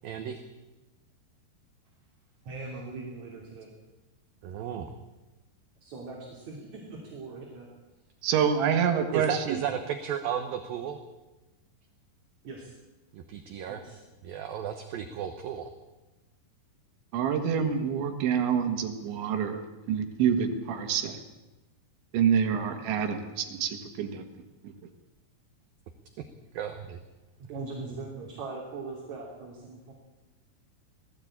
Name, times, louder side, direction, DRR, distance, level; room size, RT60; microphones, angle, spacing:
voice 1, 0.0-0.4 4.4-4.9 9.1-11.0 13.1-13.8 14.2-15.7 26.5-27.0, right 9 dB, 70° right, 7 dB, 2.5 m, -34 dB
voice 2, 2.4-3.7 5.8-7.7 12.4-12.7 13.6-14.0 27.4-29.9, right 3 dB, 45° right, -2 dB, 3.9 m, -41 dB
voice 3, 8.2-9.6 17.1-21.2 22.1-24.2, right 7 dB, 85° right, 6 dB, 4.1 m, -27 dB
19.5 x 16.0 x 8.7 m, 1.1 s
omnidirectional pair, 5.1 m